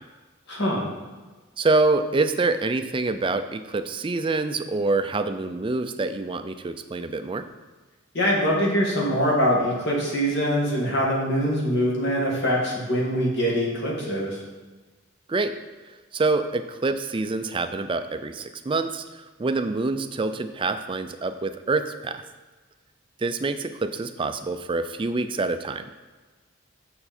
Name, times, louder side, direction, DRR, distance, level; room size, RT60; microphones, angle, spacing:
voice 1, 0.5-0.9 8.1-14.4, equal, 60° left, -3 dB, 2.0 m, -23 dB
voice 2, 1.6-7.4 15.3-15.5 16.1-22.2 23.2-25.8, right 3 dB, 25° right, 9 dB, 0.4 m, -26 dB
6.8 x 6.8 x 4.3 m, 1.3 s
head